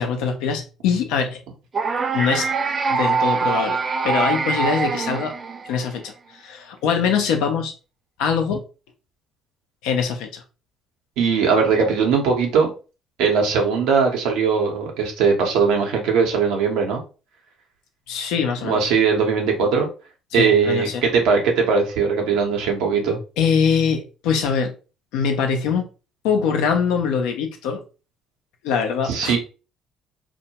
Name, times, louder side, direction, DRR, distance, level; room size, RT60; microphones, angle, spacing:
voice 1, 0.0-1.4 2.1-2.5 2.9-5.3 5.6-7.7 8.2-8.6 9.8-10.4 18.1-18.8 20.3-21.0 23.4-24.7 25.1-25.9 26.2-27.8 28.6-29.3, left 6 dB, 75° left, 0.5 m, -23 dB
sound 1, 1.7-5.9, right 5 dB, 40° right, 0.3 m, -23 dB
voice 2, 11.2-12.7 13.2-17.0 18.6-19.9 20.3-23.2 29.0-29.4, right 5 dB, 70° right, 0.7 m, -19 dB
2.1 x 2.1 x 2.8 m
hypercardioid pair, 55°, 0 cm